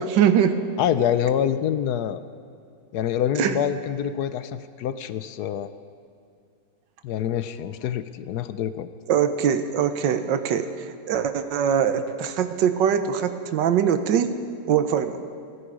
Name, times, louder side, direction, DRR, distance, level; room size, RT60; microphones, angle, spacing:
voice 1, 0.0-0.6 3.4-3.6 9.1-10.7 11.0-14.3 14.7-15.2, right 8 dB, 85° right, 10 dB, 1.5 m, -22 dB
voice 2, 0.8-2.2 2.9-5.7 7.0-8.9, left 9 dB, 70° left, 12 dB, 1.1 m, -26 dB
29.5 x 10.0 x 4.8 m, 2.4 s
omnidirectional pair, 1.9 m